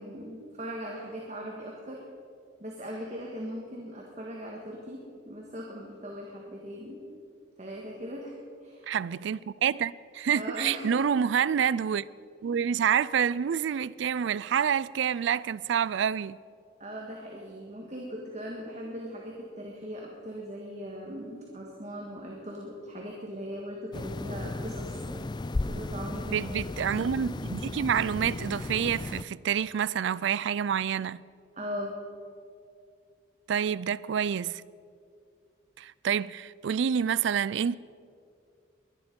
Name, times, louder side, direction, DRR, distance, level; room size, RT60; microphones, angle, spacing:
voice 1, 0.0-2.0 2.6-7.0 7.6-8.4 8.6-9.0 10.3-11.1 11.7-11.8 16.8-25.3 25.7-26.7 31.5-32.0, equal, 35° right, 1.6 m, -39 dB
voice 2, 8.9-12.1 12.4-16.4 26.3-31.2 33.5-34.6 35.8-37.8, right 8 dB, 70° right, 0.3 m, -28 dB
sound 1, 23.9-29.2, left 2 dB, 20° left, 0.4 m, -35 dB
22.5 x 10.5 x 5.3 m
head